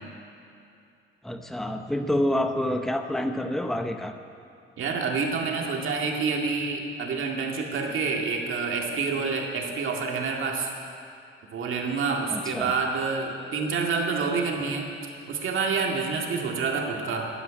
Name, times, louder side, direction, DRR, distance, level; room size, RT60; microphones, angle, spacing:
voice 1, 1.2-4.2 12.3-12.8, left 1 dB, ahead, 6 dB, 0.7 m, -28 dB
voice 2, 4.8-10.9 11.5-14.9 15.3-17.3, right 4 dB, 70° right, 0 dB, 2.0 m, -28 dB
12.5 x 9.1 x 9.8 m, 2.5 s
cardioid pair, 140°, 21 cm